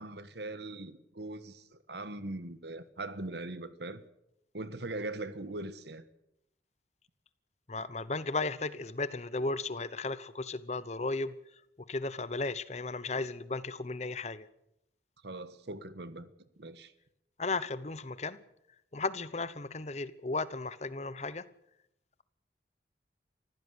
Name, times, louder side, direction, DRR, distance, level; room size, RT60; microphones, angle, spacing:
voice 1, 0.0-4.0 4.5-6.0 15.2-16.3 16.6-16.9, right 2 dB, 70° right, 1.5 m, -41 dB
voice 2, 7.7-11.4 11.8-14.5 17.4-18.4 18.9-21.5, left 3 dB, 35° left, 0.9 m, -35 dB
24.5 x 15.5 x 8.1 m
head